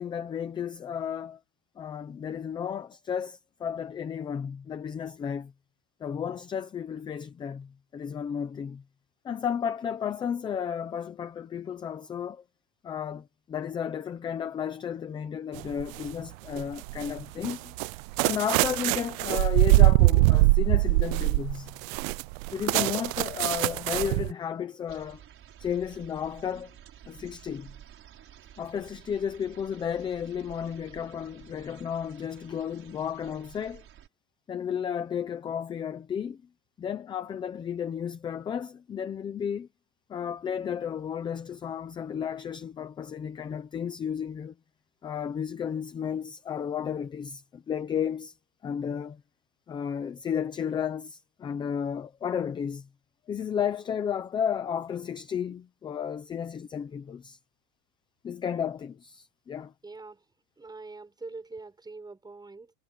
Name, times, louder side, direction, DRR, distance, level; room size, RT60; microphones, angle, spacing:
voice 1, 0.0-1.4 1.8-5.5 6.0-8.8 9.2-12.4 12.8-17.7 18.2-21.8 22.5-25.2 25.6-26.7 27.1-27.7 28.6-33.8 34.5-36.4 36.8-39.7 40.1-44.5 45.0-48.3 48.6-49.2 49.7-52.9 53.3-57.4 58.2-59.7, left 8 dB, 10° left, 0.4 m, -33 dB
sound 1, 15.6-16.1 16.6-24.3, right 23 dB, 55° right, 0.5 m, -23 dB
sound 2, 24.9-34.1, right 10 dB, 25° right, 6.0 m, -51 dB
voice 2, 59.8-60.2 60.6-62.7, right 3 dB, 10° right, 6.8 m, -43 dB
cardioid pair, 175°, 48 cm